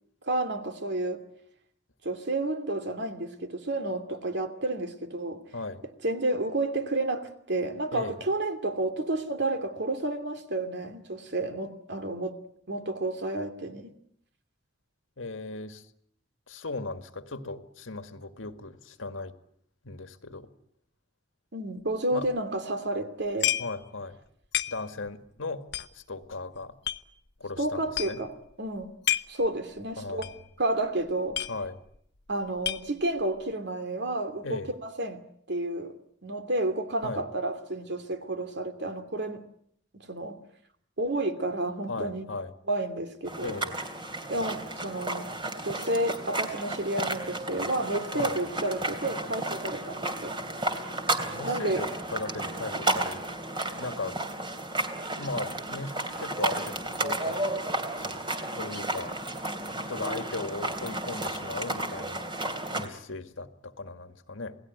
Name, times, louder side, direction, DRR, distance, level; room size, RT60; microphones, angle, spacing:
voice 1, 0.2-1.2 2.0-5.4 6.0-12.4 12.7-13.9 21.5-23.5 27.6-28.9 29.3-30.3 30.6-31.4 32.3-35.2 35.5-35.9 36.2-39.5 40.1-40.4 41.0-42.3 42.7-43.6 44.3-45.3 45.6-50.4 51.4-51.8, right 2 dB, 60° right, 8 dB, 2.7 m, -31 dB
voice 2, 5.5-5.8 7.9-8.2 15.2-15.9 16.5-19.4 19.8-20.5 22.1-22.3 23.6-24.2 24.7-25.6 25.9-26.8 27.4-28.2 30.0-30.4 31.5-31.8 34.4-34.7 37.0-37.2 41.9-42.5 43.4-43.8 48.1-48.4 51.3-53.2 53.6-54.2 55.1-57.4 58.0-58.2 58.6-59.2 59.9-62.4 62.7-64.6, left 3 dB, 90° left, 9 dB, 1.9 m, -37 dB
sound 1, 22.2-22.3 23.4-23.8 24.1-24.2 24.5-25.1 25.7-27.0 27.6-27.7 27.9-28.3 28.8-29.5 29.8-29.9 30.2-30.4 30.7-30.8 31.1-32.0 32.3-33.2, left 12 dB, 60° left, 1.0 m, -30 dB
sound 2, 43.3-62.9, right 2 dB, 25° right, 2.9 m, -33 dB
28.0 x 18.0 x 9.5 m, 0.69 s
head